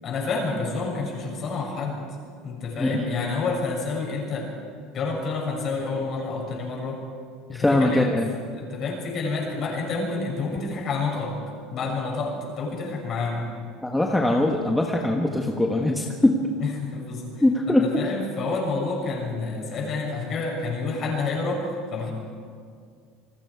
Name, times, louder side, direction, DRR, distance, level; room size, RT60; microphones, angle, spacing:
voice 1, 0.0-2.0 2.4-4.6 4.9-7.0 7.5-8.0 8.5-11.4 11.7-13.4 16.6-22.1, left 3 dB, 40° left, -1 dB, 6.6 m, -29 dB
voice 2, 7.5-8.3 13.8-16.4 17.4-17.9, left 1 dB, 5° left, 0 dB, 1.4 m, -21 dB
28.5 x 19.5 x 4.8 m, 2.2 s
cardioid pair, 140°, 0 cm